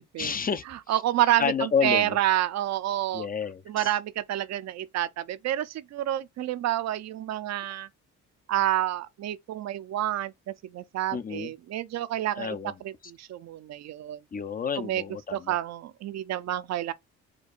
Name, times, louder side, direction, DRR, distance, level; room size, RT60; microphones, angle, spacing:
voice 1, 0.2-1.0 1.4-2.2 3.1-3.9 11.1-11.5 12.4-12.7 14.3-15.6, left 6 dB, 30° left, 0.4 m, -30 dB
voice 2, 0.9-3.3 3.7-7.9 8.5-12.6 12.8-14.2 14.8-15.0 15.3-16.9, right 13 dB, 60° right, 0.5 m, -28 dB
4.5 x 2.3 x 2.4 m
cardioid pair, 90°, 30 cm